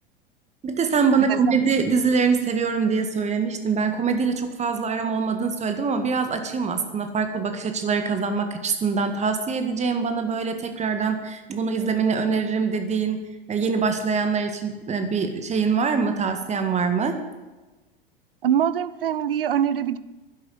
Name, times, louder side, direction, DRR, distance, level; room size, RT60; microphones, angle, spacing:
voice 1, 0.6-13.2 13.5-17.2, right 5 dB, 25° right, 7 dB, 1.8 m, -24 dB
voice 2, 1.2-1.6 18.4-20.0, right 9 dB, 70° right, 16 dB, 0.8 m, -24 dB
11.5 x 11.0 x 8.0 m, 1.2 s
figure-of-eight pair, 85°, 29 cm